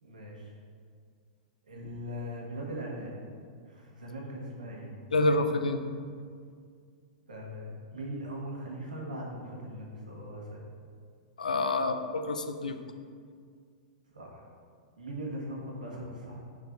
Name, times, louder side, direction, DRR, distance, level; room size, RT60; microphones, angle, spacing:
voice 1, 0.0-0.5 1.7-3.1 3.7-4.9 7.3-10.6 14.1-14.5 15.0-16.4, equal, 85° right, -2 dB, 1.4 m, -40 dB
voice 2, 5.1-5.8 11.4-12.8, left 2 dB, 85° left, 8 dB, 0.5 m, -27 dB
6.5 x 4.7 x 3.9 m, 2.1 s
hypercardioid pair, 105°, 4 cm